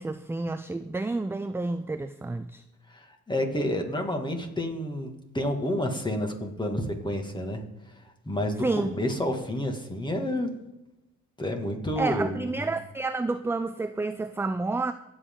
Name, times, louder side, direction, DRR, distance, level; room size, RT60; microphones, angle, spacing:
voice 1, 0.0-2.6 8.6-9.0 12.0-14.9, right 3 dB, 10° right, 11 dB, 0.4 m, -30 dB
voice 2, 2.9-7.6 8.3-10.5 11.4-12.6, left 1 dB, 15° left, 3 dB, 2.3 m, -29 dB
23.5 x 8.1 x 3.9 m, 0.98 s
cardioid pair, 90°, 30 cm